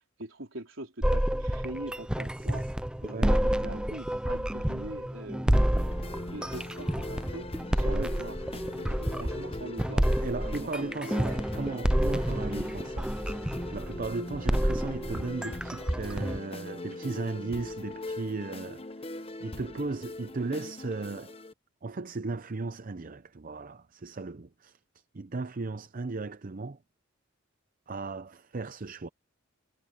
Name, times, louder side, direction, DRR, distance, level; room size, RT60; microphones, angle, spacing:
voice 1, 0.2-2.6 3.0-5.9 6.3-7.5 7.7-10.1 10.5-11.2, right 1 dB, 70° right, 4.3 m, -42 dB
sound 1, 1.0-16.4, equal, 5° right, 0.4 m, -29 dB
voice 2, 3.0-3.4 7.9-8.2 10.2-13.2 13.7-21.3 21.8-24.8 25.1-26.8 27.9-29.1, right 3 dB, 45° right, 0.6 m, -36 dB
sound 2, 5.5-21.5, left 2 dB, 30° left, 1.0 m, -41 dB
head